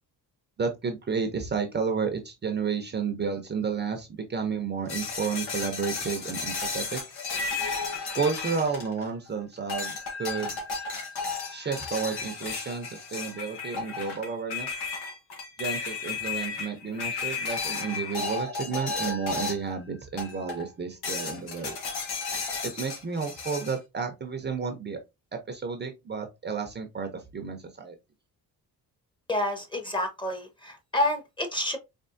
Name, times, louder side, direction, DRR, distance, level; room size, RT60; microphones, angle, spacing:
voice 1, 0.6-7.0 8.1-10.6 11.5-14.7 15.6-21.8 22.6-25.0 25.3-28.0, right 5 dB, 30° right, 0.7 m, -31 dB
sound 1, 4.9-9.3 9.7-19.8 20.2-20.7 21.0-23.8, left 4 dB, 85° left, 1.6 m, -33 dB
voice 2, 29.3-31.8, left 1 dB, 10° left, 1.0 m, -29 dB
4.4 x 3.0 x 2.6 m
cardioid pair, 140°, 38 cm